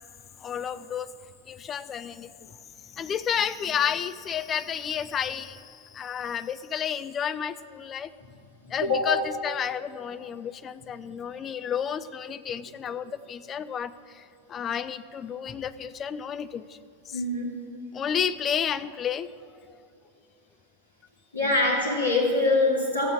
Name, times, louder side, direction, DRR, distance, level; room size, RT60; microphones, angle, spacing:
voice 1, 0.4-1.1 1.5-2.3 2.9-8.1 8.7-9.2 9.4-14.2 14.5-16.7 17.1-17.2 17.9-19.3 21.4-21.5, left 8 dB, 25° left, 13 dB, 0.4 m, -31 dB
voice 2, 17.1-17.5 21.3-23.1, left 2 dB, 75° left, -8 dB, 2.4 m, -23 dB
14.5 x 7.9 x 6.4 m, 2.6 s
figure-of-eight pair, 90°, 0 cm